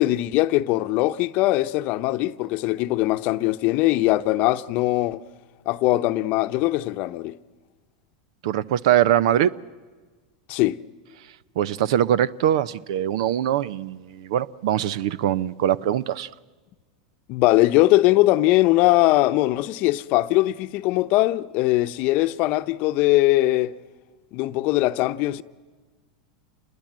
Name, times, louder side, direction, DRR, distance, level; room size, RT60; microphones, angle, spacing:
voice 1, 0.0-5.2 5.7-7.4 10.5-10.8 17.3-23.7 24.3-25.4, left 17 dB, 55° left, 0.8 m, -21 dB
voice 2, 8.4-9.5 11.6-16.3, right 11 dB, 70° right, 0.7 m, -22 dB
27.5 x 21.0 x 7.5 m
hypercardioid pair, 105°, 3 cm